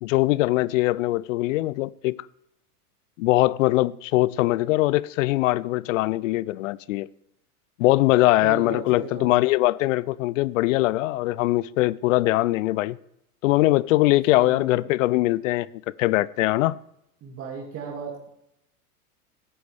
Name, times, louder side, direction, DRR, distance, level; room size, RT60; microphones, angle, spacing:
voice 1, 0.0-2.2 3.2-7.1 7.8-13.0 13.4-15.7 16.0-16.8, left 18 dB, 55° left, 0.6 m, -22 dB
voice 2, 8.4-9.5 14.3-14.9 17.2-18.3, right 6 dB, 30° right, 2.5 m, -37 dB
17.5 x 14.0 x 3.5 m
hypercardioid pair, 120°, 45 cm